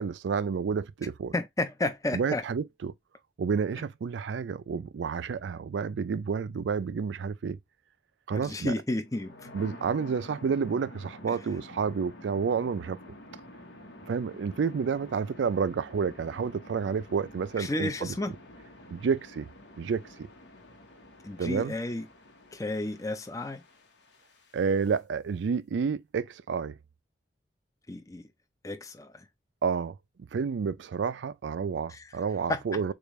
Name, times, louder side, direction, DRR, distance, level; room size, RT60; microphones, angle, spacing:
voice 1, 0.0-1.3 2.1-2.9 3.4-7.6 8.3-8.7 9.5-13.0 14.1-18.1 18.9-19.5 19.8-20.3 21.4-21.7 24.5-26.8 29.6-30.0 30.3-32.9, right 6 dB, 85° right, 0.4 m, -30 dB
voice 2, 1.3-2.4 8.3-9.5 17.6-18.4 21.2-22.1 22.5-23.6 27.9-28.2 28.6-29.3 31.9-32.1 32.5-32.9, left 2 dB, 20° left, 0.6 m, -32 dB
sound 1, 9.0-25.0, left 1 dB, 80° left, 1.1 m, -49 dB
6.7 x 2.4 x 3.1 m
head